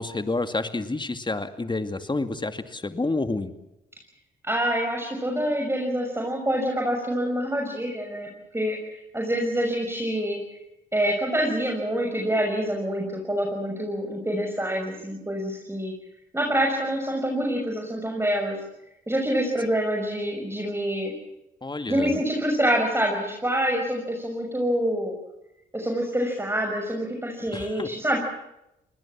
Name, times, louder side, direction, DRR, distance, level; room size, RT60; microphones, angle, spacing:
voice 1, 0.0-3.5 21.6-22.2 27.5-27.9, left 2 dB, 25° left, 9 dB, 2.5 m, -29 dB
voice 2, 4.4-10.4 10.9-15.9 16.3-18.6 19.1-21.1 21.9-25.1 25.7-28.2, equal, 10° right, 1 dB, 6.5 m, -26 dB
29.0 x 20.0 x 7.6 m, 0.88 s
supercardioid pair, 50°, 20 cm